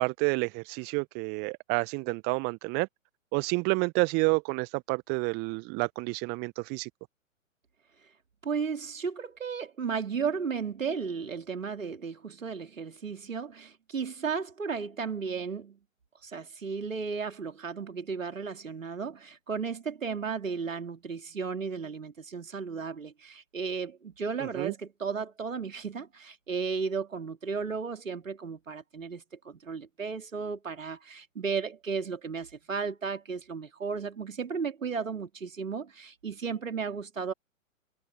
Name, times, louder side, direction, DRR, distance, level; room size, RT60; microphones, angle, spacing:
voice 1, 0.0-2.9 3.3-6.9 24.4-24.7, right 30 dB, 25° right, 1.3 m, -29 dB
voice 2, 8.4-15.8 16.2-37.3, right 5 dB, 70° right, 3.0 m, -34 dB
figure-of-eight pair, 115°, 40 cm